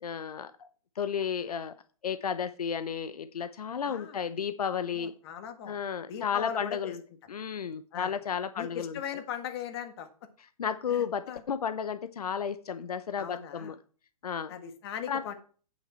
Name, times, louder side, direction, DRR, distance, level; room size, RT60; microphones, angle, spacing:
voice 1, 0.0-0.7 1.0-1.7 2.0-5.1 5.7-7.0 7.3-9.0 10.6-13.8 14.2-14.5 15.1-15.2, left 7 dB, 85° left, 12 dB, 0.8 m, -33 dB
voice 2, 3.8-4.2 4.9-5.8 6.1-7.0 7.9-8.1 8.6-10.1 10.9-11.4 13.2-13.7 14.5-15.3, left 9 dB, 45° left, 8 dB, 1.7 m, -39 dB
8.7 x 7.3 x 4.4 m, 0.40 s
hypercardioid pair, 150°, 19 cm